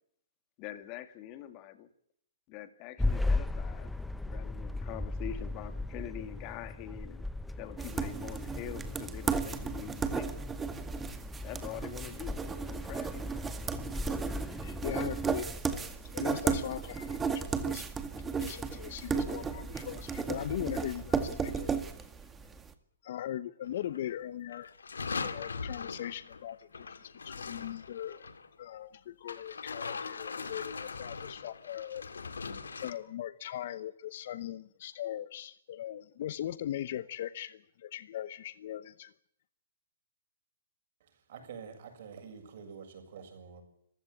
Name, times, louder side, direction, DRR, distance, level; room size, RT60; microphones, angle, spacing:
voice 1, 0.6-1.9 2.5-3.9 4.3-7.3 7.6-10.3 11.4-13.5, left 12 dB, 35° left, 9 dB, 2.3 m, -44 dB
sound 1, 3.0-15.6, left 2 dB, 5° left, 0.8 m, -37 dB
sound 2, 7.8-22.6, right 5 dB, 15° right, 2.0 m, -35 dB
voice 2, 13.9-17.9 18.4-21.9 23.0-24.7 25.2-28.3 28.6-32.3 32.8-39.1, left 11 dB, 55° left, 15 dB, 0.9 m, -40 dB
sound 3, 23.6-24.2 24.5-28.5 29.3-32.9, left 5 dB, 85° left, 2.2 m, -40 dB
voice 3, 41.0-43.6, right 6 dB, 60° right, 5 dB, 7.2 m, -47 dB
25.5 x 15.5 x 8.6 m, 0.71 s
hypercardioid pair, 130°, 0 cm